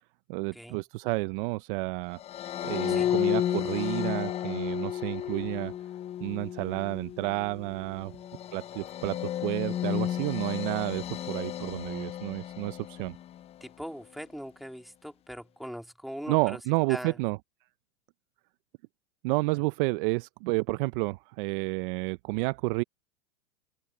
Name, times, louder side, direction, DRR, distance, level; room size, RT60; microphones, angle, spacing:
voice 1, 0.3-2.2 2.6-5.7 6.2-8.1 8.5-13.2 16.3-17.4 19.2-22.8, right 25 dB, 40° right, 0.7 m, -30 dB
sound 1, 2.2-13.5, left 11 dB, 15° left, 0.5 m, -33 dB
voice 2, 13.6-16.6 16.9-17.1, equal, ahead, 2.9 m, -41 dB
open air
hypercardioid pair, 120°, 39 cm